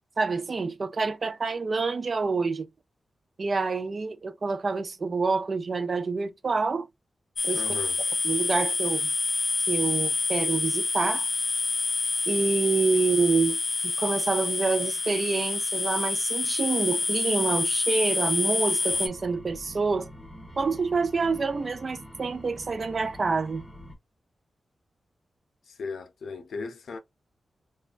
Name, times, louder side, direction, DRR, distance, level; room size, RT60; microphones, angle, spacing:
voice 1, 0.2-2.7 3.4-6.9 7.4-7.7 8.2-9.1 9.7-11.3 12.3-20.1 20.6-23.7, right 4 dB, 40° right, 0.4 m, -27 dB
sound 1, 7.4-19.1, left 3 dB, 35° left, 0.3 m, -27 dB
voice 2, 7.5-8.0 25.7-27.0, left 4 dB, 85° left, 0.6 m, -37 dB
sound 2, 18.9-23.9, equal, 5° left, 0.7 m, -45 dB
3.2 x 2.2 x 2.3 m
wide cardioid pair, 140°, 0 cm